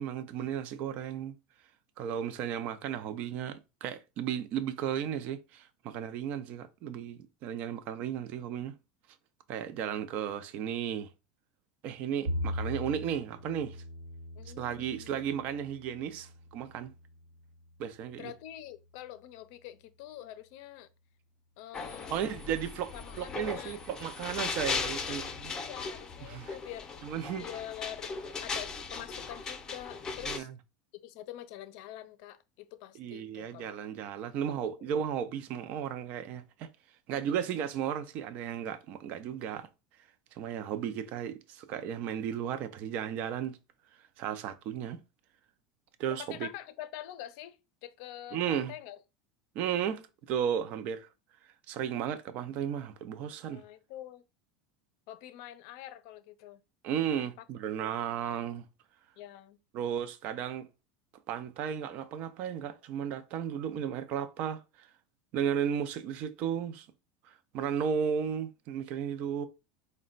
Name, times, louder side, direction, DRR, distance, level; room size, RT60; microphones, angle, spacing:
voice 1, 0.0-1.3 2.0-8.7 9.5-11.1 11.8-13.8 14.6-16.9 17.8-18.3 22.1-25.5 26.3-26.6 27.0-27.5 30.2-30.5 33.0-36.7 37.1-39.7 40.3-43.6 44.2-45.0 46.0-46.5 48.3-48.7 49.5-51.1 51.7-53.6 56.8-58.6 59.7-60.7 61.3-64.9 65.3-66.9 67.3-69.5, right 8 dB, 50° right, 0.5 m, -34 dB
Bowed string instrument, 12.3-18.6, left 1 dB, 80° right, 1.0 m, -40 dB
voice 2, 14.4-15.2 18.2-20.9 21.6-22.4 22.9-23.8 25.0-26.9 27.4-28.1 28.4-30.5 31.0-33.8 34.5-35.0 37.1-37.5 46.1-49.0 53.5-54.3 55.1-56.6 57.1-57.4 57.8-57.9 59.2-59.6, left 12 dB, 65° left, 0.5 m, -46 dB
sound 1, 21.7-30.4, left 5 dB, 25° left, 0.7 m, -38 dB
4.1 x 2.2 x 3.8 m
supercardioid pair, 125°, 3 cm